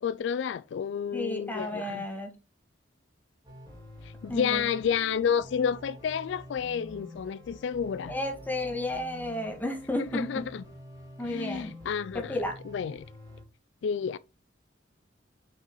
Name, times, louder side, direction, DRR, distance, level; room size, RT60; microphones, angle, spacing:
voice 1, 0.0-2.0 4.0-8.1 10.0-10.6 11.2-12.4 12.7-13.1 13.8-14.2, left 7 dB, 70° left, 0.3 m, -30 dB
voice 2, 1.1-2.3 4.3-4.6 8.1-10.5 11.2-11.7 12.1-12.6, left 1 dB, 10° left, 1.8 m, -32 dB
sound 1, 3.4-13.4, left 1 dB, 20° right, 3.1 m, -47 dB
5.8 x 5.6 x 3.8 m
head